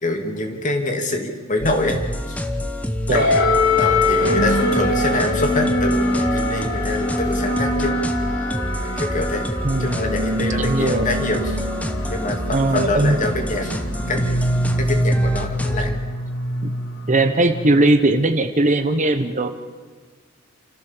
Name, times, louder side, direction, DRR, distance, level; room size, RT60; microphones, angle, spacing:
voice 1, 0.0-2.0 2.3-2.4 3.1-3.3 3.8-7.9 8.5-8.6 9.0-9.5 9.8-11.6 12.1-13.8 14.1-15.9, left 2 dB, 35° left, 4 dB, 2.7 m, -25 dB
sound 1, 1.6-15.9, left 1 dB, 5° left, 1.1 m, -27 dB
sound 2, 3.1-17.9, left 1 dB, 70° left, 3.8 m, -23 dB
voice 2, 9.6-10.0 10.6-11.1 12.5-13.2 16.6-16.7 17.1-19.5, right 2 dB, 35° right, 8 dB, 1.1 m, -19 dB
29.0 x 14.5 x 7.3 m, 1.4 s
head